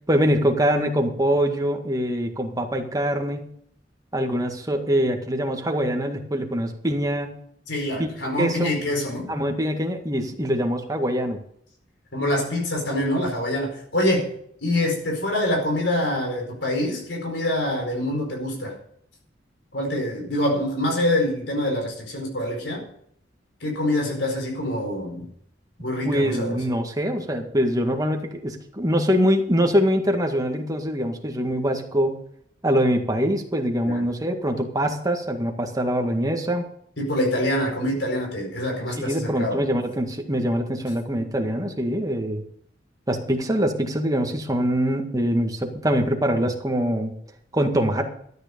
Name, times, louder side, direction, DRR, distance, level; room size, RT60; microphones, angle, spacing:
voice 1, 0.1-3.5 4.1-7.4 8.0-8.1 8.4-8.7 9.3-11.4 26.0-32.2 32.6-36.7 39.0-42.4 43.1-47.1 47.5-48.1, equal, 20° right, 3 dB, 1.9 m, -23 dB
voice 2, 7.7-9.3 12.1-14.3 14.6-18.7 19.7-22.8 23.6-25.3 25.8-26.6 33.8-34.0 37.0-39.6, left 1 dB, 75° left, 1 dB, 4.6 m, -25 dB
13.5 x 9.3 x 5.3 m, 0.66 s
head